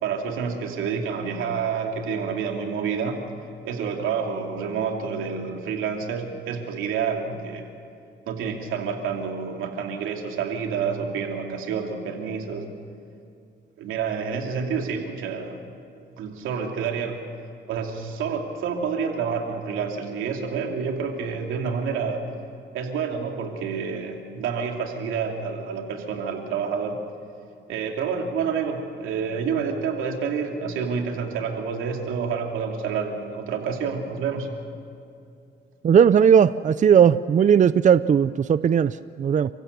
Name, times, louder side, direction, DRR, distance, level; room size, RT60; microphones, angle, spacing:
voice 1, 0.0-3.2 3.6-7.7 8.3-12.7 13.8-15.6 16.2-17.2 17.7-22.3 22.7-27.0 27.7-34.5, right 6 dB, 85° right, 2 dB, 2.9 m, -28 dB
voice 2, 35.8-39.5, right 8 dB, 40° right, 15 dB, 0.5 m, -17 dB
30.0 x 15.5 x 6.9 m, 2.5 s
cardioid pair, 90°, 20 cm